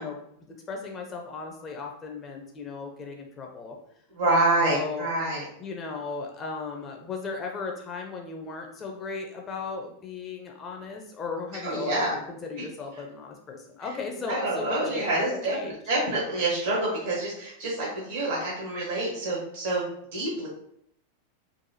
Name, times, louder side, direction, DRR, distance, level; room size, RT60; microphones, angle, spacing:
voice 1, 0.0-3.8 4.3-5.1 5.6-15.2 15.5-15.8, left 4 dB, 25° left, 1 dB, 0.5 m, -36 dB
voice 2, 4.1-5.4 11.6-12.2 13.8-13.9 14.2-20.5, right 2 dB, 65° right, -4 dB, 1.1 m, -27 dB
3.9 x 2.6 x 2.7 m, 0.71 s
figure-of-eight pair, 90°, 0 cm